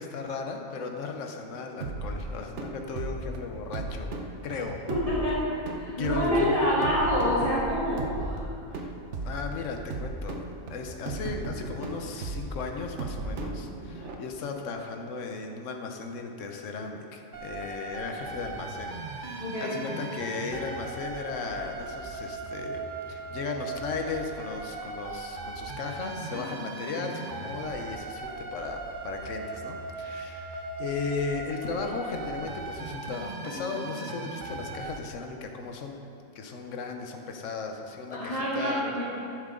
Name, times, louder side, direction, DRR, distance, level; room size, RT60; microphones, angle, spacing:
voice 1, 0.0-4.2 4.4-4.8 6.0-6.7 8.7-9.0 9.2-10.4 10.7-36.0 36.3-38.8, left 4 dB, 70° left, 3 dB, 1.3 m, -36 dB
sound 1, 1.8-14.1, right 2 dB, 60° right, 1.2 m, -36 dB
voice 2, 4.9-8.5 19.4-19.7 38.1-39.0, equal, 25° left, -10 dB, 2.6 m, -27 dB
sound 2, 17.3-35.0, right 3 dB, 45° right, 0.8 m, -38 dB
11.5 x 11.0 x 3.8 m, 2.6 s
omnidirectional pair, 1.4 m